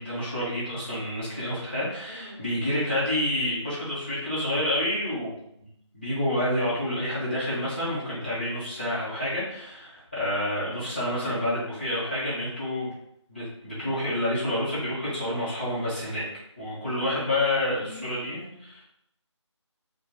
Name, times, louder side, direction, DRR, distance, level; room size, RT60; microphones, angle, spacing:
voice 1, 0.0-5.7 5.9-12.9 13.3-16.2 16.6-18.8, left 1 dB, 20° left, -11 dB, 1.1 m, -29 dB
voice 2, 2.0-2.5 16.9-18.7, left 2 dB, 10° right, -19 dB, 0.6 m, -46 dB
2.6 x 2.4 x 3.7 m, 0.76 s
figure-of-eight pair, 175°, 16 cm